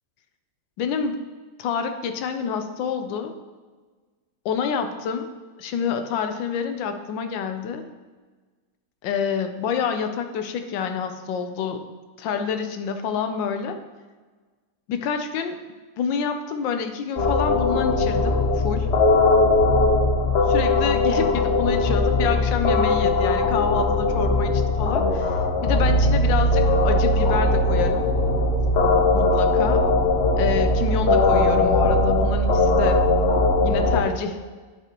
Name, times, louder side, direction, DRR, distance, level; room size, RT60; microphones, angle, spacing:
voice 1, 0.8-1.2 1.6-3.3 4.4-5.2 5.6-7.8 9.0-11.8 12.2-13.8 14.9-15.6 16.0-18.9 20.5-28.1 29.1-29.8 30.4-33.0 33.6-34.4, left 6 dB, 85° left, 7 dB, 1.4 m, -27 dB
sound 1, 17.2-34.0, left 2 dB, 50° left, 0.8 m, -20 dB
10.0 x 5.8 x 3.0 m, 1.4 s
omnidirectional pair, 1.9 m